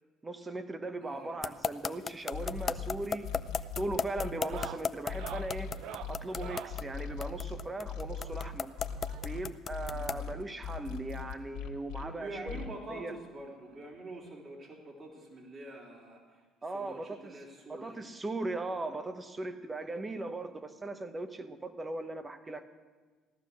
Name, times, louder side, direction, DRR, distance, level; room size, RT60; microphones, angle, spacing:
voice 1, 0.2-3.3 3.8-5.7 6.1-8.7 9.2-12.6 12.9-13.1 16.6-17.4 17.7-22.6, right 2 dB, 20° right, 9 dB, 1.1 m, -38 dB
voice 2, 1.0-1.4 9.8-10.4 12.0-16.5 16.7-18.1, right 2 dB, 40° right, -1 dB, 3.6 m, -46 dB
sound 1, 1.4-10.3, left 6 dB, 35° left, 0.5 m, -34 dB
sound 2, 2.3-4.7 5.1-12.0 12.5-12.7, left 7 dB, 90° left, 1.9 m, -39 dB
sound 3, 2.8-3.1 3.4-3.7 4.3-6.8 8.1-9.5 10.6-10.7 10.9-11.0 11.4-11.5 12.8-12.9 14.3-14.4, right 10 dB, 75° right, 0.6 m, -46 dB
16.0 x 12.0 x 6.3 m, 1.4 s
cardioid pair, 110°, 0 cm